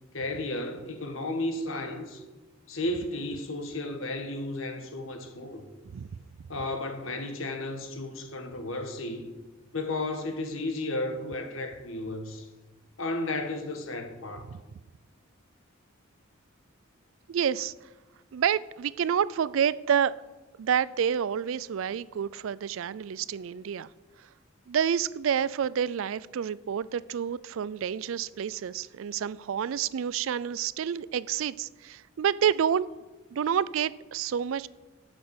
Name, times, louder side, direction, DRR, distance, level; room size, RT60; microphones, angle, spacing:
voice 1, 0.1-2.2 2.7-5.6 6.5-9.3 9.7-12.5 13.0-14.5, left 2 dB, 70° left, 1.5 m, -33 dB
voice 2, 17.3-17.7 18.3-20.1 20.6-23.9 24.7-32.9 33.3-34.7, right 8 dB, 70° right, 0.3 m, -28 dB
12.5 x 6.2 x 7.0 m
head